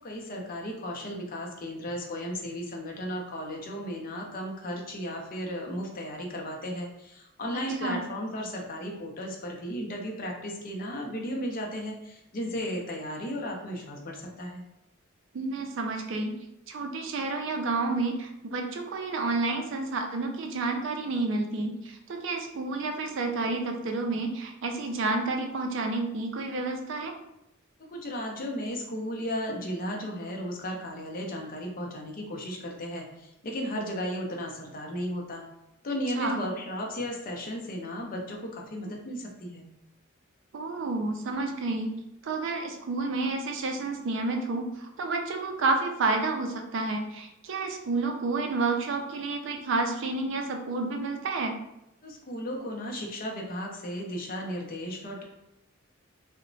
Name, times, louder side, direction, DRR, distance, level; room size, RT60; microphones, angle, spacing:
voice 1, 0.0-14.6 27.9-35.4 35.8-39.6 52.0-55.2, equal, 45° left, 0 dB, 0.5 m, -35 dB
voice 2, 7.5-8.0 15.3-16.3 16.7-27.1 36.1-36.4 40.5-42.0 42.2-51.6, right 3 dB, 60° right, 4 dB, 0.4 m, -30 dB
2.9 x 2.0 x 2.5 m, 0.85 s
head